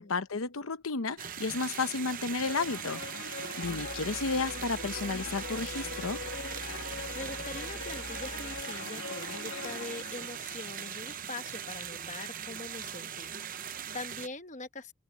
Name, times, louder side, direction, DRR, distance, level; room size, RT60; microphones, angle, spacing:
voice 1, 0.0-3.0 3.3-6.2, left 4 dB, 85° left, 0.8 m, -32 dB
sound 1, 1.2-14.3, right 9 dB, 40° right, 0.8 m, -40 dB
sound 2, 2.4-11.0, left 4 dB, 65° left, 1.9 m, -42 dB
sound 3, 3.6-8.6, equal, ahead, 1.4 m, -47 dB
voice 2, 6.8-14.9, left 3 dB, 35° left, 1.1 m, -43 dB
open air
head